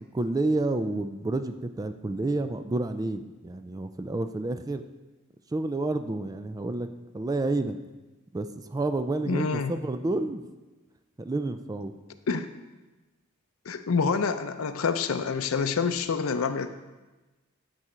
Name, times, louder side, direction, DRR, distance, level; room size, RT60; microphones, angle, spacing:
voice 1, 0.1-4.8 5.5-6.9 7.1-7.8 8.3-10.4 11.2-11.9, right 2 dB, 20° right, 9 dB, 0.3 m, -29 dB
voice 2, 9.3-9.7 12.3-12.5 13.7-16.7, left 5 dB, 90° left, 9 dB, 0.5 m, -27 dB
12.0 x 4.2 x 5.0 m, 1.2 s
head